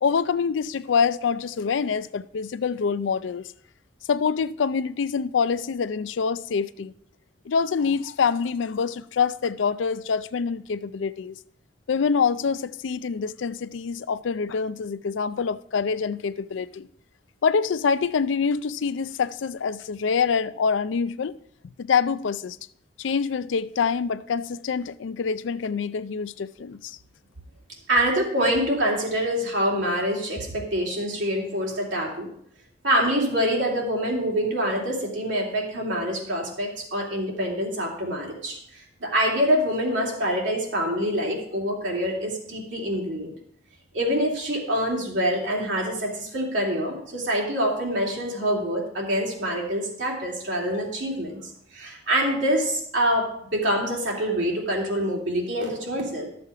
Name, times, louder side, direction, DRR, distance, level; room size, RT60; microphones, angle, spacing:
voice 1, 0.0-3.5 4.1-6.9 7.5-11.4 11.9-16.9 17.4-21.4 21.8-22.6 23.0-27.0, left 6 dB, 85° left, 0.4 m, -25 dB
voice 2, 27.9-32.3 32.8-43.3 43.9-51.4 51.7-56.3, equal, 80° right, 3.0 m, -25 dB
12.5 x 7.0 x 4.8 m
head